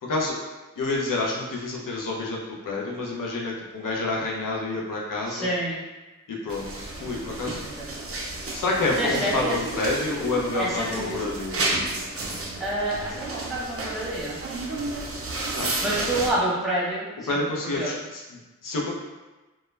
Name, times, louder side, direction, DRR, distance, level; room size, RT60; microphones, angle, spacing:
voice 1, 0.0-0.4 0.8-5.5 6.3-7.6 8.5-12.1 15.6-15.9 17.3-18.9, left 2 dB, 85° left, -2 dB, 0.6 m, -28 dB
voice 2, 5.3-5.8 7.6-7.9 8.9-9.6 10.6-11.1 12.6-14.4 15.8-17.4 17.8-17.9, right 1 dB, ahead, -7 dB, 0.9 m, -28 dB
sound 1, 6.5-16.3, right 2 dB, 45° right, 0.5 m, -32 dB
2.2 x 2.1 x 3.1 m, 1.1 s
wide cardioid pair, 50°, 31 cm